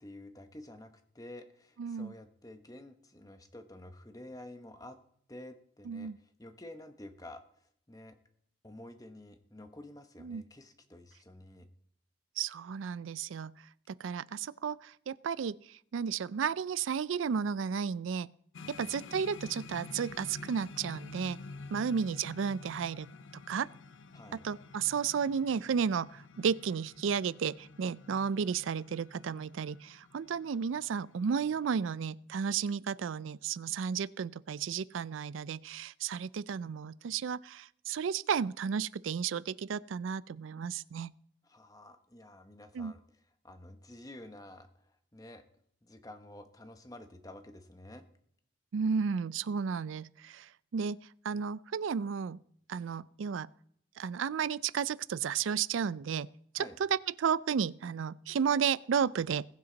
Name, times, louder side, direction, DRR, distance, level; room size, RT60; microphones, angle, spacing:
voice 1, 0.0-5.0 5.3-8.2 8.6-11.7 18.6-18.9 24.1-24.4 41.4-43.0 43.4-45.4 45.8-48.1 56.6-56.8, left 1 dB, 20° left, 1.1 m, -50 dB
voice 2, 1.8-2.1 5.9-6.2 10.2-10.4 12.4-13.5 13.9-15.6 15.9-18.3 18.8-21.4 21.7-23.1 23.5-23.7 24.4-41.1 42.7-42.9 48.7-51.0 51.2-52.4 52.7-53.5 54.0-56.3 56.5-59.5, right 6 dB, 80° right, 0.4 m, -33 dB
sound 1, 18.5-31.9, left 3 dB, 75° left, 0.6 m, -49 dB
21.0 x 7.9 x 3.9 m
head